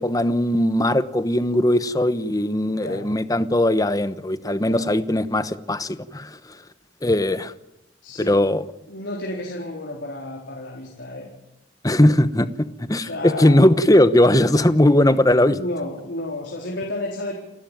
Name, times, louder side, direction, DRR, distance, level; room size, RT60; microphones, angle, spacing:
voice 1, 0.0-6.4 7.0-7.5 8.3-8.6 11.8-15.6, left 1 dB, 20° left, 1.0 m, -19 dB
voice 2, 2.6-3.1 4.6-4.9 8.0-8.4 8.9-11.3 13.0-13.6 15.4-17.3, left 1 dB, 80° left, 4.2 m, -31 dB
29.5 x 12.5 x 9.2 m
head